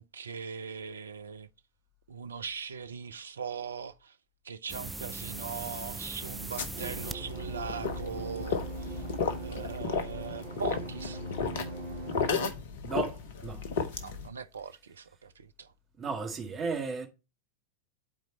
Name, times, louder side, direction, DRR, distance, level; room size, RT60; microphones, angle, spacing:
voice 1, 0.0-1.5 2.1-4.2 4.4-9.1 9.4-11.2 14.0-15.7, right 6 dB, 70° right, 0.5 m, -40 dB
sound 1, 4.7-9.8, right 3 dB, 10° right, 0.4 m, -42 dB
sound 2, 6.6-14.3, left 5 dB, 55° left, 1.0 m, -34 dB
sound 3, 6.7-12.5, right 2 dB, 55° right, 1.2 m, -41 dB
voice 2, 12.8-13.6 16.0-17.1, right 5 dB, 25° right, 1.7 m, -34 dB
11.0 x 4.4 x 2.9 m
figure-of-eight pair, 90°, 0 cm